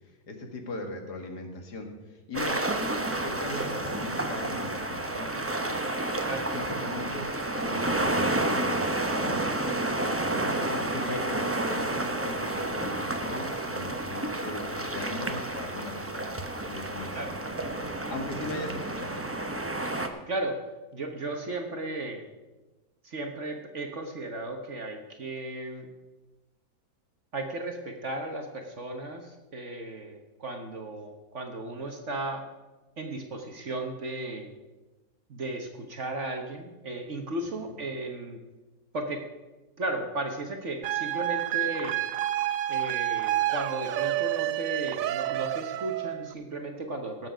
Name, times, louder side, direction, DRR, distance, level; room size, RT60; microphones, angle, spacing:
voice 1, 0.3-5.8 6.5-9.5 10.3-16.3 16.7-17.7 18.1-19.2 37.6-37.7, left 2 dB, 75° left, 4 dB, 2.3 m, -39 dB
sound 1, 2.3-20.1, right 2 dB, 15° right, 0.4 m, -30 dB
voice 2, 10.3-10.7 11.1-11.2 17.1-17.3 20.3-20.6 20.9-22.2 23.0-25.9 27.3-32.4 33.0-34.5 35.3-38.4 38.9-39.2 39.8-42.0 42.7-47.3, right 2 dB, 50° right, 4 dB, 1.3 m, -35 dB
sound 2, 40.8-46.3, right 14 dB, 65° right, 0.9 m, -29 dB
18.0 x 7.8 x 5.0 m, 1.1 s
omnidirectional pair, 1.7 m